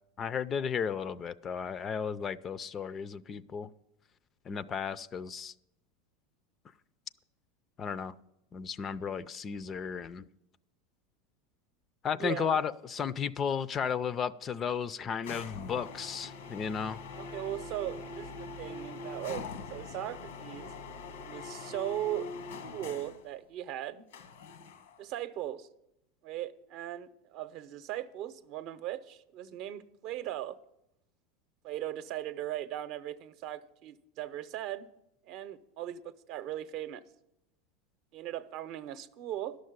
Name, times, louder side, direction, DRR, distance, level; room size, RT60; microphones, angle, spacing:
voice 1, 0.2-3.7 4.5-5.5 7.8-8.2 8.5-10.3 12.0-17.0, left 7 dB, 30° left, 0.4 m, -34 dB
voice 2, 12.2-12.6 17.1-20.7 21.2-22.3 22.7-24.1 25.0-25.7 26.2-30.6 31.6-34.9 35.3-37.0 38.1-39.6, right 12 dB, 50° right, 0.7 m, -38 dB
sound 1, 15.2-23.3 24.1-25.0, left 4 dB, 85° left, 1.2 m, -43 dB
11.5 x 6.5 x 9.5 m
supercardioid pair, 130°, 0 cm